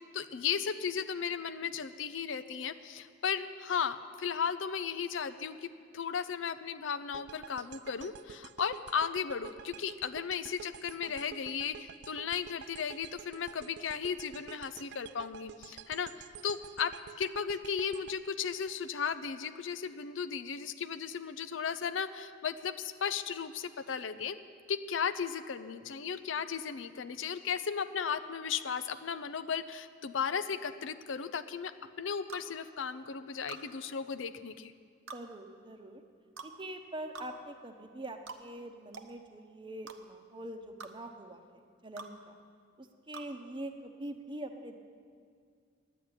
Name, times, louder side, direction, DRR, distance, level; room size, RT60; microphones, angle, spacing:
voice 1, 0.1-16.9 17.2-24.4 24.7-31.7 32.0-34.7, left 6 dB, 80° left, 12 dB, 0.5 m, -35 dB
sound 1, 7.1-19.3, right 8 dB, 60° right, 0.3 m, -50 dB
sound 2, 32.3-32.5 33.5-33.7 35.1-35.2 36.4-36.5 37.1-37.3 38.3-38.4 38.9-39.1 39.9-40.0 40.8-40.9 42.0-42.1 43.1-43.3, right 5 dB, 85° right, 0.9 m, -45 dB
voice 2, 35.1-36.0 36.4-41.4 41.8-42.3 42.8-44.7, right 1 dB, 25° right, 6 dB, 0.9 m, -44 dB
10.0 x 8.5 x 9.6 m, 2.2 s
head